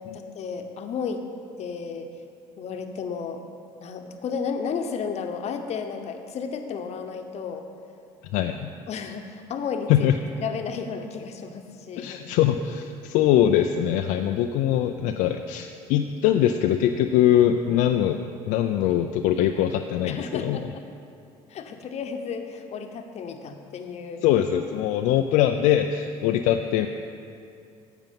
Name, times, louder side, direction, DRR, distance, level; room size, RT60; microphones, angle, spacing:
voice 1, 0.1-1.2 1.6-2.1 2.6-3.4 3.8-7.6 8.9-10.1 10.4-12.2 20.0-20.6 21.5-24.2, left 6 dB, 55° left, 6 dB, 0.9 m, -33 dB
voice 2, 8.3-8.7 9.9-10.2 12.0-18.2 18.5-20.6 24.2-26.9, left 11 dB, 75° left, 6 dB, 0.4 m, -22 dB
9.1 x 7.2 x 5.3 m, 2.5 s
supercardioid pair, 75°, 13 cm